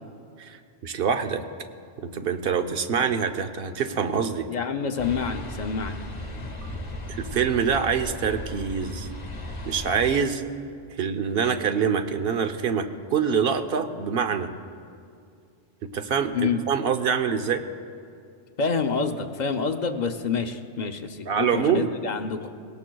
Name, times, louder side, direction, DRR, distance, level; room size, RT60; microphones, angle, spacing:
voice 1, 0.4-1.4 2.0-4.5 7.2-9.1 9.6-10.4 11.0-14.5 15.8-17.6 21.3-21.9, right 6 dB, 60° right, 7 dB, 0.9 m, -25 dB
voice 2, 4.5-6.0 16.3-16.6 18.6-22.4, left 5 dB, 45° left, 6 dB, 0.7 m, -27 dB
sound 1, 5.0-10.2, left 1 dB, 30° left, 1.1 m, -36 dB
20.5 x 17.5 x 2.3 m, 2.4 s
omnidirectional pair, 1.2 m